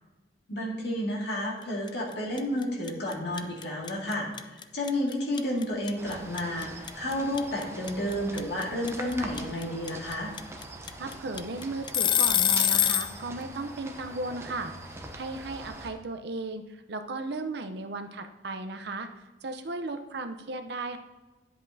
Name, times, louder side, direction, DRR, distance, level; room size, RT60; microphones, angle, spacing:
voice 1, 0.5-10.3, left 1 dB, 65° left, -2 dB, 2.1 m, -31 dB
sound 1, 1.9-2.1 2.4-13.1, left 10 dB, 25° left, 0.3 m, -25 dB
sound 2, 6.0-15.9, right 2 dB, 15° right, 0.7 m, -43 dB
voice 2, 11.0-19.1 19.4-21.0, right 2 dB, 65° right, 7 dB, 0.7 m, -36 dB
10.5 x 7.8 x 2.7 m, 1.2 s
head